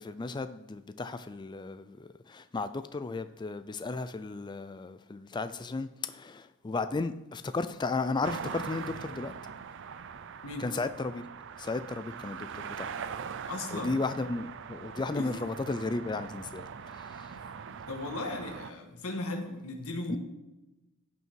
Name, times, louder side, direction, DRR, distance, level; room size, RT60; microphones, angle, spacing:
voice 1, 0.0-9.3 10.6-11.2 11.6-13.0 13.7-16.6 17.0-17.3 20.1-20.2, left 3 dB, 20° left, 0.3 m, -34 dB
sound 1, 8.2-18.7, right 6 dB, 55° right, 0.5 m, -42 dB
voice 2, 13.4-14.0 15.1-15.3 17.9-20.2, left 2 dB, 85° left, 1.7 m, -36 dB
16.5 x 5.6 x 4.6 m
head